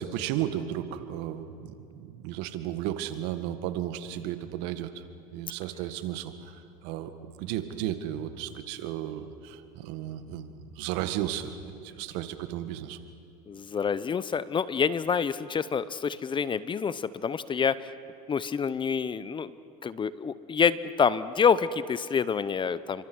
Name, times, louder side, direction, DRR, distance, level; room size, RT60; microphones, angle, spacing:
voice 1, 0.0-5.0 5.3-13.0, right 11 dB, 65° right, 10 dB, 1.8 m, -34 dB
voice 2, 13.5-17.9 18.3-19.5 19.8-23.0, left 6 dB, 25° left, 16 dB, 0.8 m, -27 dB
28.5 x 25.0 x 6.3 m, 2.5 s
supercardioid pair, 100°, 19 cm